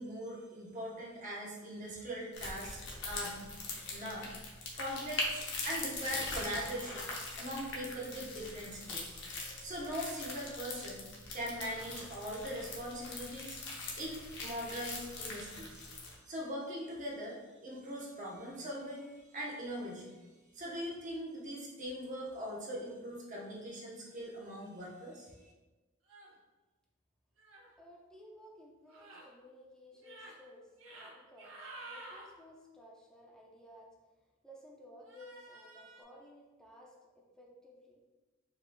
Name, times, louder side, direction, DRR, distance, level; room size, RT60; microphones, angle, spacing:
voice 1, 0.0-3.4 3.8-4.3 4.8-7.1 7.4-11.0 11.3-13.6 14.0-15.8 16.3-17.4 17.6-20.2 20.5-25.3, equal, 40° right, -4 dB, 0.9 m, -41 dB
sound 1, 2.3-16.2, left 2 dB, 60° left, 0.9 m, -42 dB
sound 2, 26.1-26.3 27.4-27.7 28.9-29.3 29.9-30.3 30.8-31.1 31.4-32.2 35.0-36.0, right 2 dB, 85° right, 1.1 m, -51 dB
voice 2, 27.8-31.5 31.8-33.9 34.4-38.0, left 1 dB, 5° left, -3 dB, 0.7 m, -56 dB
4.7 x 3.7 x 2.3 m, 1.2 s
head